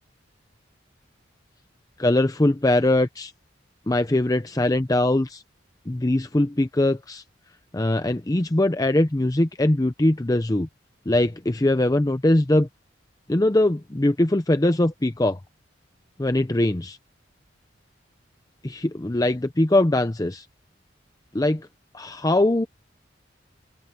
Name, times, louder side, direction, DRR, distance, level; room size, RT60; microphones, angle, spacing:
voice 1, 2.0-3.3 3.9-5.4 5.9-7.2 7.7-10.7 11.1-12.7 13.3-15.4 16.2-17.0 18.6-20.5 21.3-21.7 21.9-22.7, left 1 dB, 20° left, 0.6 m, -21 dB
open air
head